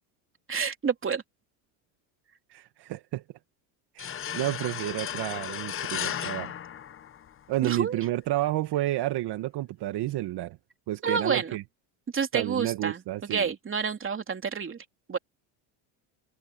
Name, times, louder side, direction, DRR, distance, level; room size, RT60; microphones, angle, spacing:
voice 1, 0.5-1.2 7.6-8.0 11.0-11.6 12.1-15.2, right 6 dB, 25° right, 3.2 m, -29 dB
voice 2, 2.5-3.2 3.9-6.5 7.5-10.6 10.9-11.6 12.3-13.5, right 15 dB, 55° right, 1.7 m, -30 dB
sound 1, 4.0-7.6, left 9 dB, 25° left, 0.8 m, -35 dB
supercardioid pair, 110°, 49 cm